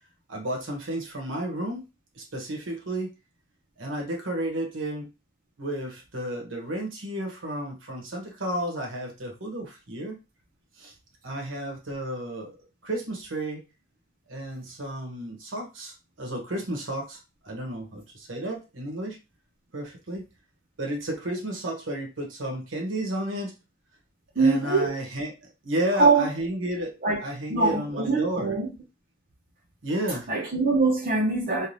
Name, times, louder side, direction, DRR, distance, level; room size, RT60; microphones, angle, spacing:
voice 1, 0.3-1.8 2.2-3.1 3.8-5.1 5.6-10.1 10.8-10.9 11.2-12.5 12.8-13.6 14.3-17.2 17.4-19.2 19.7-20.2 20.8-23.5 24.4-25.3 25.6-28.6 29.8-30.3, right 1 dB, 70° right, 1 dB, 1.1 m, -32 dB
voice 2, 24.4-25.0 25.9-26.3 27.0-27.2 27.5-28.7 30.1-31.7, right 3 dB, 45° right, -4 dB, 0.8 m, -23 dB
3.2 x 2.4 x 2.6 m, 0.28 s
head